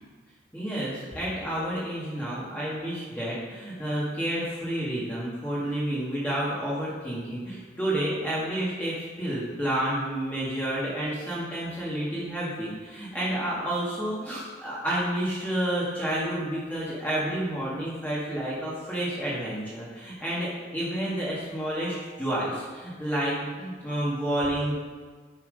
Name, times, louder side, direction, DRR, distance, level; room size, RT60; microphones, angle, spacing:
voice 1, 0.5-24.7, right 1 dB, 10° left, -8 dB, 1.7 m, -30 dB
10.0 x 5.8 x 5.2 m, 1.5 s
head